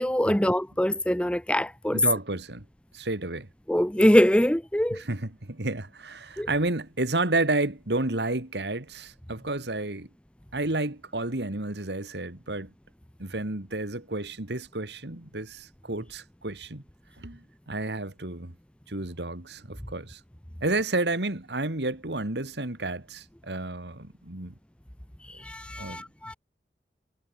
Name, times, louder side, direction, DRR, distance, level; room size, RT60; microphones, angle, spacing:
voice 1, 0.0-2.0 3.7-5.0 6.4-6.5 25.4-26.3, equal, 5° left, 0.8 m, -23 dB
voice 2, 1.9-2.6 2.9-3.5 4.9-10.1 10.5-12.7 13.2-16.8 17.2-18.5 18.9-20.2 20.6-24.5 25.8-26.0, right 2 dB, 75° right, 2.4 m, -31 dB
head